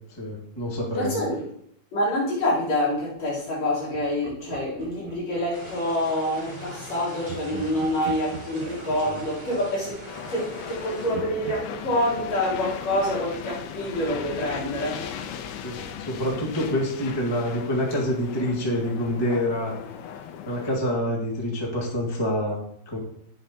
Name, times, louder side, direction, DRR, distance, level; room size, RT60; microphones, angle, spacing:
voice 1, 0.1-1.2 9.0-9.2 15.6-19.8 20.4-23.0, equal, 10° left, 1.1 m, -27 dB
voice 2, 0.9-1.5 1.9-10.0 10.3-15.2, left 1 dB, 45° left, 4.7 m, -27 dB
Laughter, 3.9-6.1 7.2-10.7 11.1-13.9, right 7 dB, 85° right, 1.4 m, -43 dB
sound 1, 5.5-11.2, equal, 15° right, 2.1 m, -42 dB
sound 2, 10.1-20.8, left 8 dB, 85° left, 2.5 m, -37 dB
11.5 x 8.3 x 2.9 m
omnidirectional pair, 4.4 m